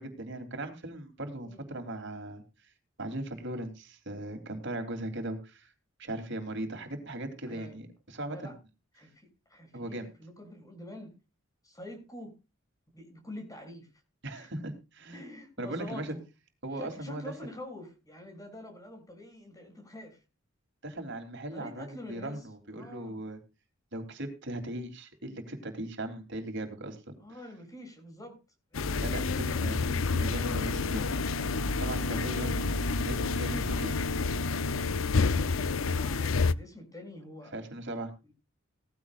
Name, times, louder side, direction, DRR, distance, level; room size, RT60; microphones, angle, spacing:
voice 1, 0.0-2.7 3.0-5.7 6.0-8.5 9.7-10.1 14.2-15.2 15.6-16.1 16.6-17.5 20.8-23.4 23.9-27.2 28.9-31.1 31.8-32.7 33.0-34.0 37.5-38.1, right 1 dB, 65° right, 5 dB, 3.3 m, -38 dB
voice 2, 7.5-7.8 8.3-8.6 9.0-9.1 9.5-11.1 11.6-12.4 12.9-13.9 14.3-14.5 15.1-16.2 16.7-20.2 21.5-22.4 22.7-23.2 27.2-28.4 32.2-32.9 35.7-37.5, left 1 dB, 20° left, 4 dB, 6.9 m, -46 dB
sound 1, 28.7-36.5, left 4 dB, 90° left, 0.7 m, -29 dB
sound 2, 30.5-35.0, right 2 dB, 65° left, 2.8 m, -40 dB
18.5 x 15.0 x 2.5 m, 0.30 s
head